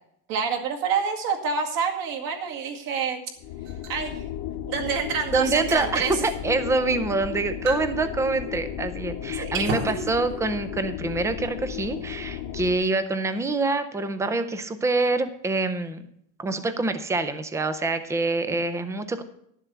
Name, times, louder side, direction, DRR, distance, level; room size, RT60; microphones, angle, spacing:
voice 1, 0.3-3.2 3.9-4.2 4.7-6.3 9.4-9.7, right 6 dB, 45° right, 2 dB, 2.2 m, -27 dB
sound 1, 3.4-12.8, left 10 dB, 45° left, 1.0 m, -34 dB
sound 2, 3.6-4.0 5.5-5.9 6.7-6.8 7.6-7.9 8.2-8.3 9.7-10.0, right 5 dB, 75° right, 3.1 m, -32 dB
voice 2, 5.3-16.0 16.4-19.2, right 3 dB, 5° right, 11 dB, 0.5 m, -26 dB
11.5 x 7.4 x 6.8 m, 0.71 s
cardioid pair, 160°, 46 cm